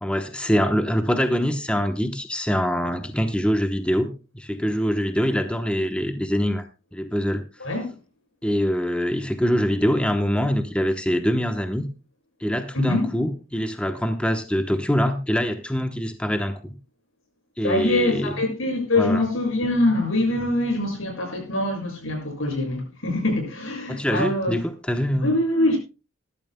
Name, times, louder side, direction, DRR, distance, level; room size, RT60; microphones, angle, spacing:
voice 1, 0.0-6.6 6.9-7.4 8.4-11.9 12.4-16.6 17.6-18.4 19.0-19.2 23.9-25.3, equal, 5° left, 0.9 m, -24 dB
voice 2, 12.7-13.1 17.6-24.5 25.2-25.8, left 1 dB, 85° left, 6.9 m, -24 dB
20.5 x 12.5 x 2.2 m
head